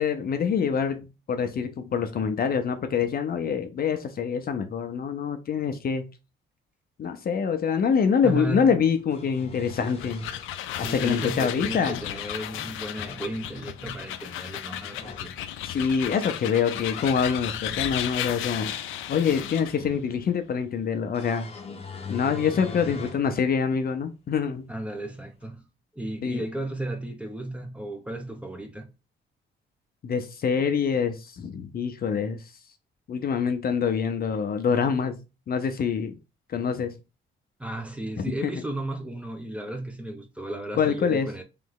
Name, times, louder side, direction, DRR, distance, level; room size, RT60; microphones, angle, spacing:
voice 1, 0.0-6.1 7.0-10.2 10.8-12.0 15.6-18.7 19.1-21.5 22.1-24.7 26.2-26.4 30.0-32.4 33.1-36.1 36.5-36.9 38.2-38.5 40.8-41.3, left 6 dB, 50° left, 0.7 m, -25 dB
sound 1, 7.9-8.0 8.9-10.5 11.6-12.3 12.8-13.3 14.8-15.3 16.3-17.2 17.7-19.9 21.1-23.3 23.8-23.9 25.4-25.5, left 4 dB, 30° left, 0.9 m, -42 dB
voice 2, 8.2-8.7 10.8-15.3 24.7-25.6 25.9-28.9 37.6-41.4, right 1 dB, 5° right, 0.9 m, -34 dB
sound 2, 9.7-19.8, left 11 dB, 85° left, 0.5 m, -34 dB
3.3 x 3.1 x 3.8 m
cardioid pair, 90°, 20 cm